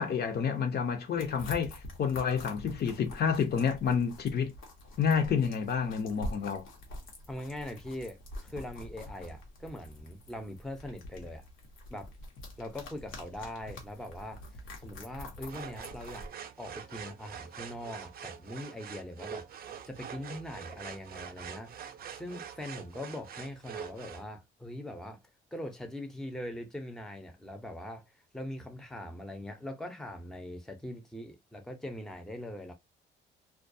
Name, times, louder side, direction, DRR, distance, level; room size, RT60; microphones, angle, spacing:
voice 1, 0.0-1.7 2.0-4.5 5.0-6.7, left 6 dB, 55° left, 0.6 m, -29 dB
sound 1, 1.2-16.3, left 1 dB, 85° left, 0.9 m, -46 dB
voice 2, 7.3-11.4 11.9-12.1 12.6-14.4 14.8-16.3 16.6-19.4 19.9-21.7 22.1-25.2 25.5-28.0 28.3-32.7, left 1 dB, ahead, 0.6 m, -41 dB
sound 2, 15.5-24.2, right 8 dB, 50° right, 0.4 m, -45 dB
2.3 x 2.2 x 2.6 m
cardioid pair, 90°, 20 cm